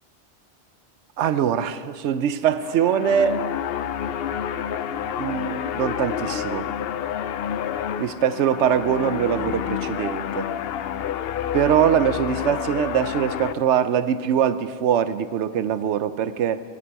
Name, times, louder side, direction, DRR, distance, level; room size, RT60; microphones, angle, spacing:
voice 1, 1.2-3.4 5.2-6.7 8.0-10.5 11.5-16.6, right 8 dB, 85° right, 13 dB, 0.9 m, -22 dB
sound 1, 2.4-13.5, left 9 dB, 65° left, 0.7 m, -29 dB
22.0 x 11.0 x 4.7 m, 2.1 s
omnidirectional pair, 1.1 m